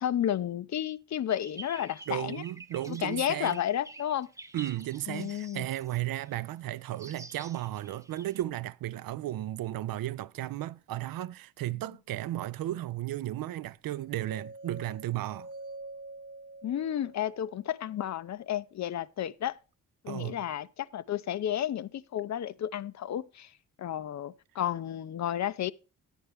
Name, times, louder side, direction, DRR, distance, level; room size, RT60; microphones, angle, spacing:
voice 1, 0.0-2.4 2.9-4.3 5.1-5.7 16.6-19.6 20.0-23.5 23.8-25.7, left 11 dB, 50° left, 0.5 m, -32 dB
sound 1, 1.3-6.3 7.0-8.4, right 2 dB, 10° right, 0.6 m, -49 dB
voice 2, 2.1-3.6 4.5-15.5 20.1-20.4, right 14 dB, 70° right, 0.5 m, -34 dB
sound 2, 13.9-18.0, right 2 dB, 35° right, 1.4 m, -47 dB
9.8 x 9.1 x 3.4 m
cardioid pair, 75°, 36 cm